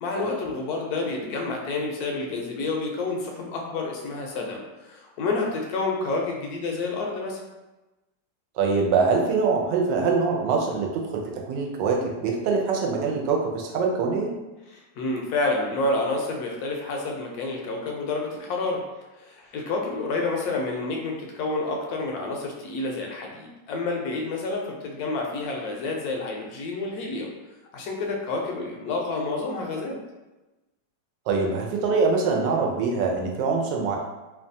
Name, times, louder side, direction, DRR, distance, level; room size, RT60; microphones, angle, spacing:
voice 1, 0.0-7.4 14.7-18.8 19.2-27.3 27.7-30.0, left 3 dB, 70° left, 0 dB, 1.0 m, -29 dB
voice 2, 8.6-14.3 31.3-34.0, right 4 dB, 85° right, 0 dB, 1.2 m, -24 dB
3.1 x 2.3 x 2.6 m, 1.1 s
omnidirectional pair, 1.9 m